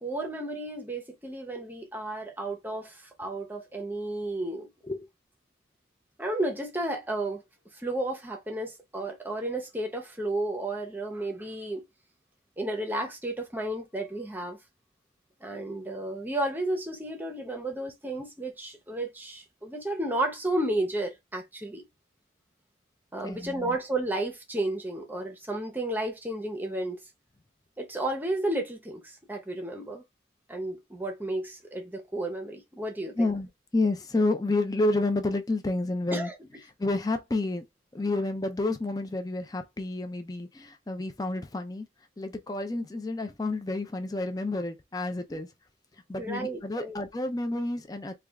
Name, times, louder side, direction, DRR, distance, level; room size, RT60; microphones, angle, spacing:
voice 1, 0.0-4.7 6.2-7.4 7.7-11.8 12.6-14.6 15.4-21.8 23.1-27.0 27.8-30.0 30.5-33.3 36.1-36.3 45.3-45.4 46.2-47.0, right 1 dB, 10° right, 0.7 m, -32 dB
voice 2, 23.2-23.8 33.1-36.3 36.8-37.6 37.9-41.9 42.2-45.5 46.1-48.1, left 2 dB, 20° left, 0.4 m, -30 dB
3.3 x 2.3 x 3.4 m
head